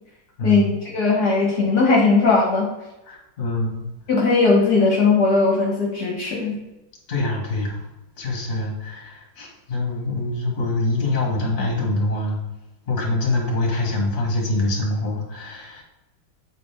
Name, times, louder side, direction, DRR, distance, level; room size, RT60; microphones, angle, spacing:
voice 1, 0.4-2.7 4.1-6.5, left 4 dB, 55° left, -2 dB, 1.7 m, -18 dB
voice 2, 3.1-3.9 7.1-7.8 8.2-12.4 12.9-15.8, left 2 dB, 35° left, -2 dB, 1.9 m, -24 dB
8.4 x 4.2 x 3.4 m, 0.97 s
omnidirectional pair, 2.2 m